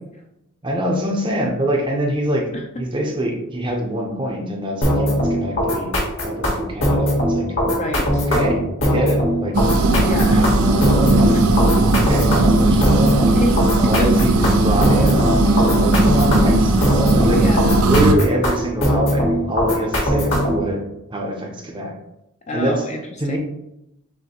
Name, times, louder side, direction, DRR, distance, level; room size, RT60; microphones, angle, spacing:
voice 1, 0.6-2.5 2.8-5.9 6.2-7.5 8.3-11.6 11.9-13.2 13.9-16.9 17.1-17.5 17.8-20.8 21.1-22.0 22.5-22.9 23.2-23.4, right 1 dB, 20° right, 1 dB, 0.6 m, -25 dB
sound 1, 4.8-20.7, equal, 65° left, 1.5 m, -20 dB
voice 2, 7.7-8.3 10.0-10.6 11.2-11.4 13.4-14.1 17.2-17.9 22.5-23.0 23.3-23.4, left 1 dB, 30° left, 3 dB, 0.5 m, -27 dB
sound 2, 9.5-18.1, right 2 dB, 90° right, 0.5 m, -17 dB
6.4 x 2.7 x 2.9 m, 0.86 s
head